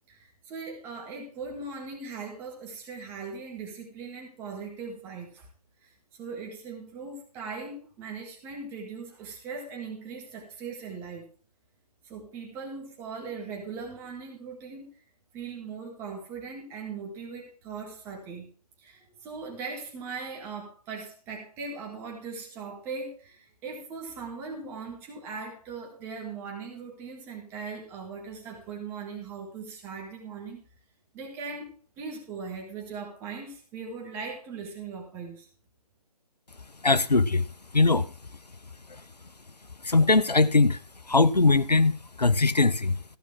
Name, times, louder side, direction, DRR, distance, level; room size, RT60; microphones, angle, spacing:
voice 1, 0.1-5.5 5.8-5.9 6.2-11.3 12.0-14.9 15.3-18.5 18.8-30.6 31.1-35.5, right 4 dB, 10° right, 1.9 m, -39 dB
voice 2, 36.8-38.4 38.9-39.1 39.8-43.0, left 3 dB, 85° left, 0.8 m, -22 dB
14.5 x 6.1 x 6.0 m
figure-of-eight pair, 150°, 20 cm